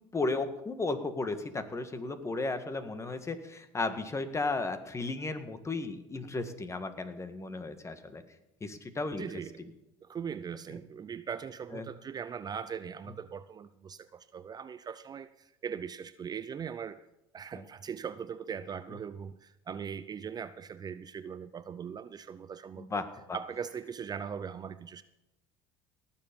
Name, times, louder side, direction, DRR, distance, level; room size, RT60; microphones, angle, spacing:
voice 1, 0.1-8.2 8.6-9.2 11.7-11.9 17.5-17.6 22.8-23.4, left 3 dB, 20° left, 10 dB, 1.7 m, -34 dB
voice 2, 9.2-9.6 10.0-17.0 17.3-22.9 23.3-25.0, right 7 dB, 30° right, 14 dB, 0.6 m, -40 dB
18.5 x 7.3 x 5.3 m, 0.91 s
supercardioid pair, 85°, 13 cm